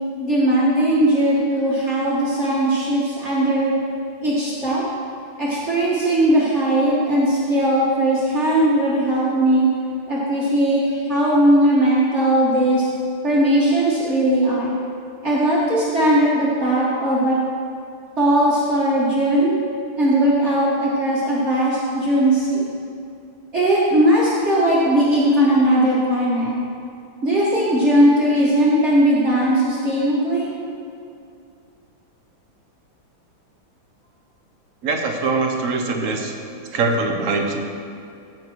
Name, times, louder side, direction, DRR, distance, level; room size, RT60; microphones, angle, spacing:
voice 1, 0.2-3.7 4.2-4.8 5.4-9.7 10.1-12.9 13.2-14.8 15.2-17.4 18.2-19.6 20.0-22.7 23.5-26.5 27.2-30.5, right 1 dB, 35° right, -7 dB, 1.8 m, -18 dB
voice 2, 34.8-36.3 36.7-37.6, right 3 dB, 50° right, 3 dB, 1.0 m, -22 dB
15.5 x 5.9 x 4.6 m, 2.5 s
omnidirectional pair, 2.2 m